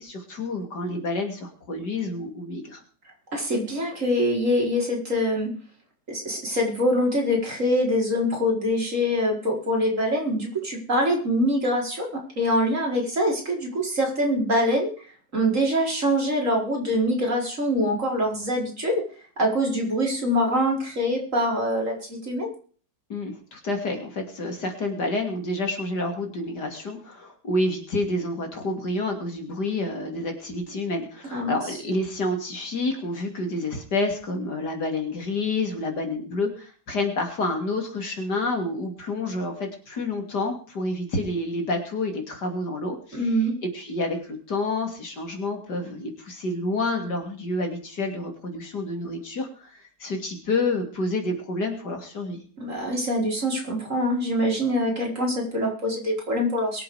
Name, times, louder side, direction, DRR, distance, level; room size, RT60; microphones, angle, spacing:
voice 1, 0.0-2.8 23.1-52.4, left 2 dB, 65° left, 4 dB, 3.5 m, -29 dB
voice 2, 3.3-5.5 6.1-14.9 15.3-19.0 19.4-22.5 31.3-31.5 43.1-43.5 52.6-56.8, equal, 45° right, -1 dB, 5.1 m, -24 dB
22.5 x 7.7 x 5.0 m, 0.42 s
omnidirectional pair, 1.9 m